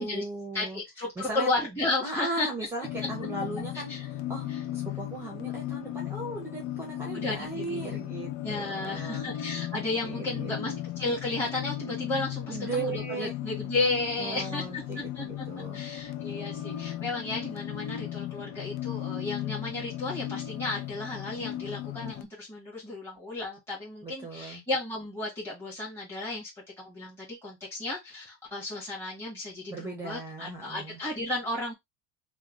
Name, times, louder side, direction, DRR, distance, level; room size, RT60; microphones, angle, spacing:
voice 1, 0.0-0.8 1.2-1.5 2.0-9.3 9.9-10.7 12.5-13.3 14.2-15.8 24.0-24.6 29.7-31.0, right 2 dB, 10° right, 0.9 m, -37 dB
voice 2, 0.5-2.5 3.9-4.0 4.5-4.6 7.1-8.0 8.4-14.8 15.1-15.4 15.7-26.5 26.8-31.7, left 2 dB, 10° left, 1.5 m, -33 dB
sound 1, 2.8-22.2, left 12 dB, 60° left, 0.6 m, -36 dB
2.9 x 2.3 x 3.6 m
cardioid pair, 145°, 30 cm